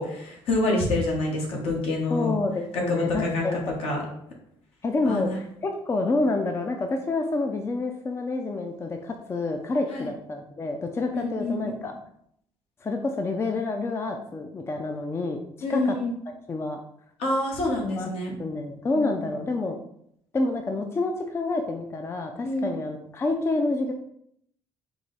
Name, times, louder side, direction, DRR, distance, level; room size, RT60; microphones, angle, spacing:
voice 1, 0.0-2.3 2.7-4.0 5.0-5.4 9.9-10.1 11.1-11.9 15.6-16.1 17.2-18.4 18.9-19.3 22.4-22.8, left 2 dB, 70° left, -1 dB, 1.3 m, -27 dB
voice 2, 2.1-4.0 4.8-11.9 12.8-15.4 15.7-16.0 16.3-16.8 17.8-18.1 18.4-19.8 20.3-23.9, left 3 dB, 25° left, 4 dB, 0.4 m, -28 dB
4.7 x 2.2 x 4.0 m, 0.70 s
cardioid pair, 100°, 10 cm